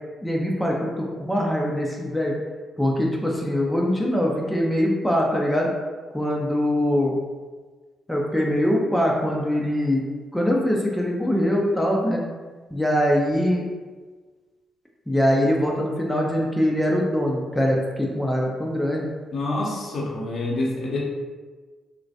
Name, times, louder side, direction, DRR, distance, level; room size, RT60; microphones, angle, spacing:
voice 1, 0.2-2.4 2.8-5.7 6.1-7.1 8.1-10.0 10.3-12.2 12.7-13.6 15.1-19.1, equal, 5° left, -1 dB, 0.5 m, -23 dB
voice 2, 19.3-21.0, left 2 dB, 55° left, -4 dB, 0.7 m, -27 dB
2.2 x 2.1 x 2.6 m, 1.4 s
hypercardioid pair, 40°, 0 cm